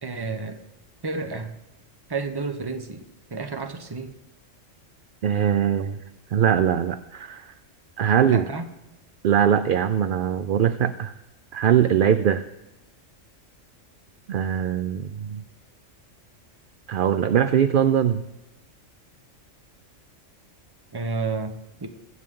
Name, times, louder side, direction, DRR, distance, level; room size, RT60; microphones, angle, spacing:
voice 1, 0.0-0.6 1.0-1.6 2.1-3.0 3.3-4.1 8.2-8.7 20.9-21.9, right 4 dB, 20° right, 8 dB, 0.8 m, -30 dB
voice 2, 5.2-6.0 6.3-7.5 8.0-8.5 9.2-11.1 11.5-12.4 14.3-15.4 16.9-18.2, right 9 dB, 60° right, 12 dB, 0.5 m, -21 dB
21.5 x 8.3 x 3.7 m, 1.0 s
omnidirectional pair, 1.3 m